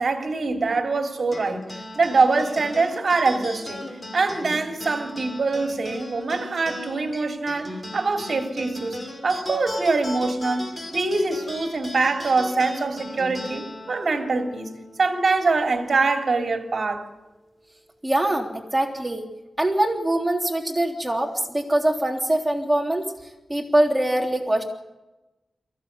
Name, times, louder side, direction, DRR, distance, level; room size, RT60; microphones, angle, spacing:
voice 1, 0.0-3.8 4.1-14.7 15.0-17.1, right 3 dB, 55° right, 3.0 m, -24 dB
sound 1, 1.3-16.1, left 1 dB, 20° left, 5.7 m, -37 dB
voice 2, 18.0-19.3 19.6-23.1 23.5-24.6, right 1 dB, 15° right, 3.5 m, -23 dB
23.5 x 16.0 x 8.2 m
wide cardioid pair, 80°, 0 cm